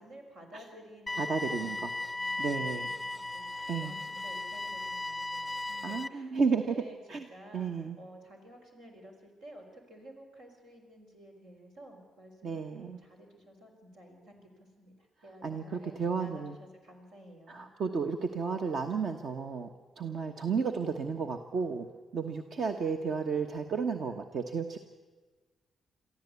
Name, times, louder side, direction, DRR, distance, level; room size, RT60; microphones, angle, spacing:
voice 1, 0.0-7.0 7.3-17.7, equal, 90° right, 0 dB, 4.4 m, -53 dB
sound 1, 1.1-6.1, left 2 dB, 20° left, 0.5 m, -36 dB
voice 2, 1.2-1.9 2.4-2.9 3.7-3.9 5.8-6.7 7.1-7.3 7.5-8.0 12.4-13.0 15.4-16.5 17.5-24.8, right 5 dB, 65° right, 5 dB, 1.1 m, -32 dB
23.0 x 14.5 x 8.2 m, 1.3 s
supercardioid pair, 55°, 0 cm